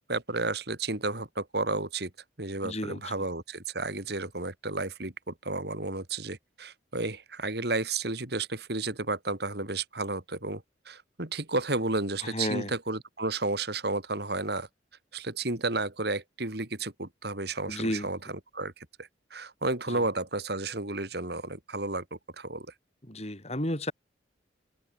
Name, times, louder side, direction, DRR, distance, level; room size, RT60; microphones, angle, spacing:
voice 1, 0.1-2.1 2.4-14.7 15.1-18.2 18.5-22.7, right 3 dB, 60° right, 3.2 m, -32 dB
voice 2, 2.6-3.1 12.2-12.7 17.7-18.1 19.9-20.0 23.1-23.9, left 1 dB, 35° left, 5.1 m, -32 dB
head